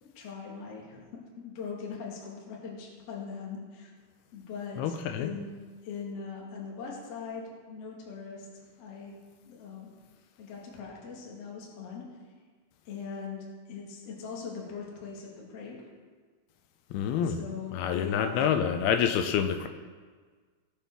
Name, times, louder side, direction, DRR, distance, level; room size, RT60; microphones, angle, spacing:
voice 1, 0.0-1.0 1.4-3.9 4.3-5.5 5.8-8.5 8.8-9.2 9.4-9.9 10.4-12.1 12.9-15.8 17.2-18.5, left 5 dB, 50° left, -3 dB, 2.2 m, -40 dB
voice 2, 4.8-5.3 16.9-17.4 17.7-19.7, left 8 dB, 80° left, 8 dB, 2.4 m, -27 dB
16.5 x 7.4 x 3.5 m, 1.5 s
omnidirectional pair, 4.8 m